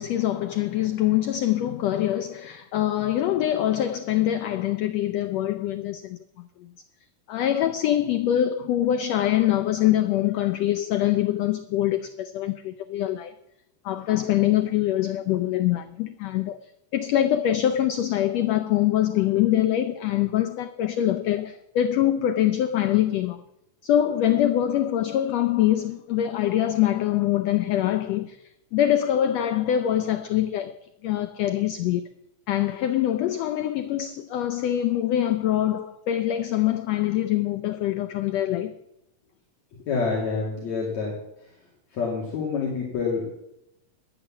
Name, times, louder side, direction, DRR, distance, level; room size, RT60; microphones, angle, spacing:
voice 1, 0.0-6.7 7.3-13.3 13.8-16.6 16.9-23.4 23.8-32.1 32.5-38.8, left 12 dB, 85° left, 1.4 m, -24 dB
voice 2, 39.9-41.2 41.9-43.3, left 5 dB, 60° left, 3.6 m, -27 dB
13.0 x 9.6 x 7.2 m
omnidirectional pair, 3.7 m